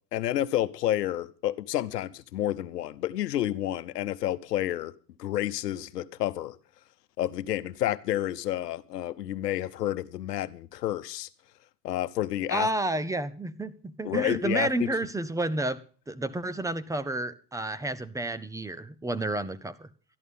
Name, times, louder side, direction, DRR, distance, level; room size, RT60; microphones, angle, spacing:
voice 1, 0.1-4.9 5.2-6.6 7.2-11.3 11.8-12.7 14.0-14.9, left 13 dB, 85° left, 0.9 m, -30 dB
voice 2, 12.5-15.8 16.1-19.9, right 2 dB, 5° right, 0.7 m, -30 dB
13.0 x 11.0 x 5.4 m
hypercardioid pair, 90°, 47 cm